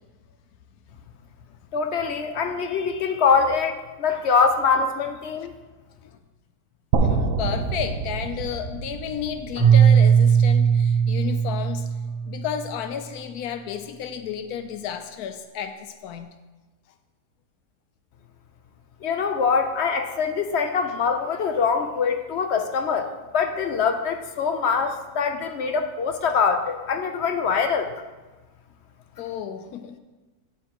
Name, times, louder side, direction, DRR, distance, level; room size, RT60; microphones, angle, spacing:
voice 1, 1.7-5.5 19.0-27.9, left 5 dB, 60° left, 6 dB, 0.8 m, -23 dB
sound 1, 6.9-11.0, right 4 dB, 65° right, 1.1 m, -27 dB
voice 2, 7.0-11.9 12.2-16.3 29.2-30.0, left 8 dB, 85° left, 8 dB, 1.1 m, -32 dB
Keyboard (musical), 9.6-12.7, right 7 dB, 90° right, 2.6 m, -18 dB
8.8 x 8.1 x 3.0 m, 1.2 s
omnidirectional pair, 1.6 m